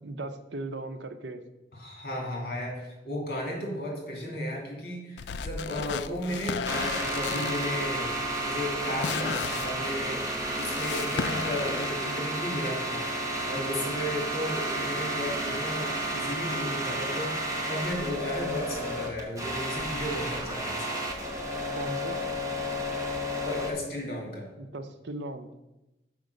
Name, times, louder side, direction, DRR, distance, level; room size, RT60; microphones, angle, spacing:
voice 1, 0.0-1.4 13.6-13.8 21.7-22.2 24.6-25.5, right 2 dB, 90° right, 9 dB, 0.7 m, -38 dB
voice 2, 1.7-8.1 8.4-10.3 10.6-21.0 23.4-24.5, left 1 dB, 55° left, -1 dB, 2.6 m, -34 dB
sound 1, 5.2-11.9, left 6 dB, 75° left, 0.3 m, -35 dB
sound 2, 6.7-23.7, right 1 dB, 20° right, 1.0 m, -32 dB
5.9 x 5.2 x 6.5 m, 0.96 s
head